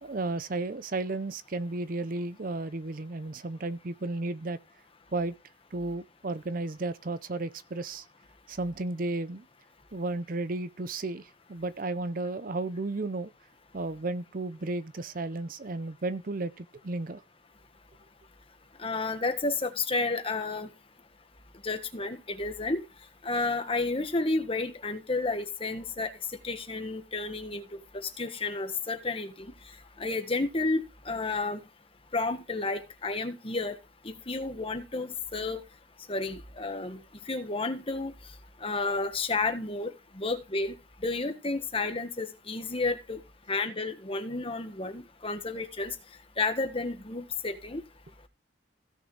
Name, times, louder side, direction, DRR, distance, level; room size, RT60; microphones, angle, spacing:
voice 1, 0.0-4.6 5.1-5.3 5.7-8.0 8.5-9.4 9.9-13.3 13.7-17.2, right 2 dB, 50° right, 0.6 m, -33 dB
voice 2, 18.8-20.7 21.6-22.8 23.2-26.1 26.4-27.7 27.9-29.5 30.0-31.6 32.1-33.7 34.0-35.6 36.1-37.0 37.3-38.1 38.6-40.8 41.0-43.2 43.5-45.9 46.4-47.8, left 3 dB, 30° left, 1.5 m, -31 dB
16.5 x 6.5 x 3.3 m
head